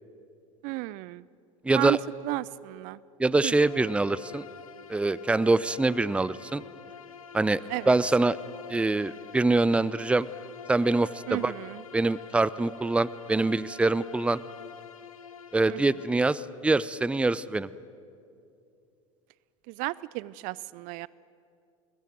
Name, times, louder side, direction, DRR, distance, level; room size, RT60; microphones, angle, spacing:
voice 1, 0.6-1.2 1.7-2.0 2.2-3.0 3.4-3.6 7.7-7.9 11.3-11.8 15.7-15.8 19.7-21.1, right 22 dB, 50° right, 21 dB, 0.5 m, -33 dB
voice 2, 1.6-2.0 3.2-4.5 4.9-6.6 7.3-7.6 7.9-8.4 8.7-10.3 10.7-11.5 11.9-14.4 15.5-17.7, right 2 dB, 5° right, 19 dB, 0.6 m, -24 dB
Bowed string instrument, 3.5-16.3, left 8 dB, 85° left, 1.2 m, -46 dB
22.5 x 20.0 x 9.2 m, 2.5 s
hypercardioid pair, 80°, 17 cm